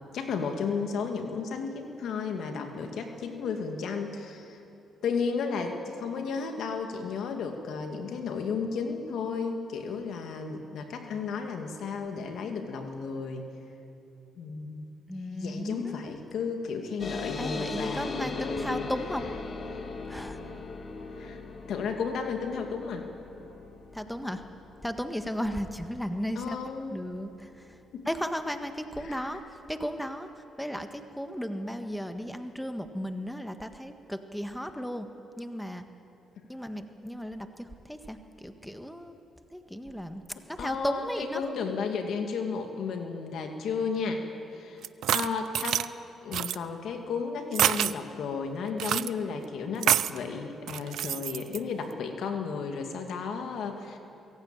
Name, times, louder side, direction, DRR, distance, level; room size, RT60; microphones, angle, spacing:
voice 1, 0.1-4.6 5.0-13.5 14.4-15.0 15.3-18.9 21.2-21.4 21.7-23.1 26.4-27.0 27.9-28.0 29.0-29.2 40.6-44.2 44.5-44.8 45.1-45.9 46.2-54.0, left 5 dB, 75° left, 4 dB, 2.2 m, -33 dB
voice 2, 15.1-16.0 17.4-19.2 20.1-20.4 23.9-24.4 24.8-26.6 26.9-27.8 28.0-29.4 29.7-35.1 35.4-35.8 36.5-39.2 39.5-41.4, equal, 5° left, 7 dB, 1.6 m, -35 dB
sound 1, 17.0-27.9, left 4 dB, 50° left, 2.1 m, -39 dB
sound 2, 44.8-45.9 46.3-46.6 47.5-47.9 48.8-49.1 49.8-50.2 50.7-51.6, right 11 dB, 75° right, 0.4 m, -27 dB
23.0 x 16.0 x 8.9 m, 2.9 s
supercardioid pair, 65°, 0 cm